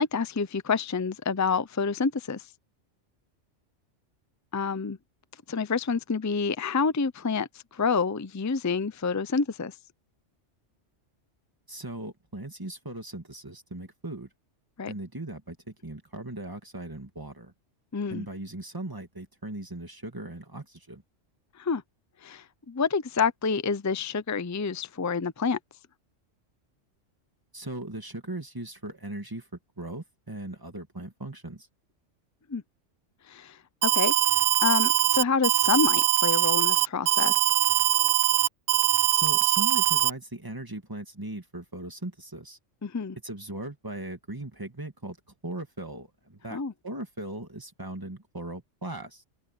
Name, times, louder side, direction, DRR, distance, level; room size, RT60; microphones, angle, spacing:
voice 1, 0.0-2.5 4.5-5.0 5.5-9.7 14.8-14.9 17.9-18.3 21.6-21.8 22.2-25.6 32.5-32.6 33.3-34.1 34.6-37.3 42.8-43.2 46.5-46.7, left 5 dB, 20° left, 0.4 m, -28 dB
voice 2, 11.7-14.3 14.9-15.6 15.8-17.5 18.1-21.0 27.5-29.5 29.8-31.7 39.1-42.6 43.2-45.2 45.4-46.6 46.8-49.2, right 1 dB, 15° right, 2.2 m, -38 dB
Alarm, 33.8-40.1, right 13 dB, 65° right, 0.7 m, -22 dB
open air
omnidirectional pair, 1.3 m